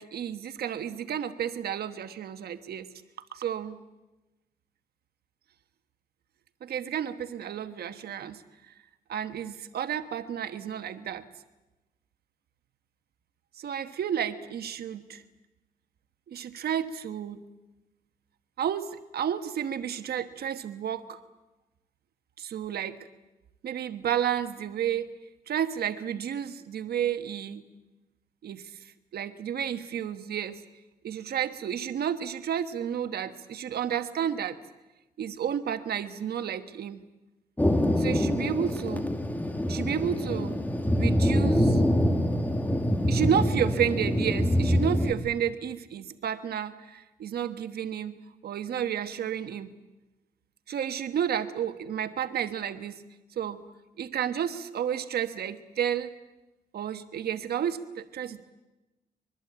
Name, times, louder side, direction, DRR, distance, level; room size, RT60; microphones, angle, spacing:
voice 1, 0.0-2.9 3.3-3.8 6.6-8.7 9.1-11.2 13.6-15.2 16.3-17.5 18.6-21.2 22.4-23.0 23.6-25.1 25.5-27.7 28.4-30.6 31.0-34.6 35.2-37.0 38.0-39.2 39.7-40.6 40.9-41.8 43.1-48.2 48.4-49.7 50.7-53.0 53.4-53.6 54.0-56.1 56.7-58.4, right 9 dB, 85° right, 9 dB, 1.3 m, -31 dB
Thunder, 37.6-45.1, equal, 10° left, 2.5 m, -25 dB
24.0 x 23.0 x 8.6 m, 1.0 s
cardioid pair, 105°, 16 cm